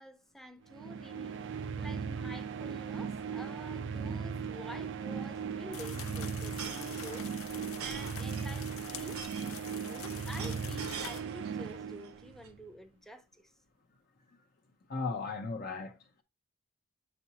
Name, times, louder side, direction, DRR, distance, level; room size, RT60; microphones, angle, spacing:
voice 1, 0.0-1.4 1.8-7.3 7.8-9.2 9.7-13.5, equal, ahead, 0.6 m, -49 dB
sound 1, 0.7-12.6, right 6 dB, 60° right, 0.5 m, -38 dB
sound 2, 5.2-11.6 12.0-12.5, right 6 dB, 85° right, 1.1 m, -45 dB
sound 3, 5.7-11.2, left 9 dB, 85° left, 0.7 m, -47 dB
voice 2, 14.9-16.2, left 4 dB, 45° left, 0.6 m, -36 dB
8.1 x 4.2 x 2.8 m
head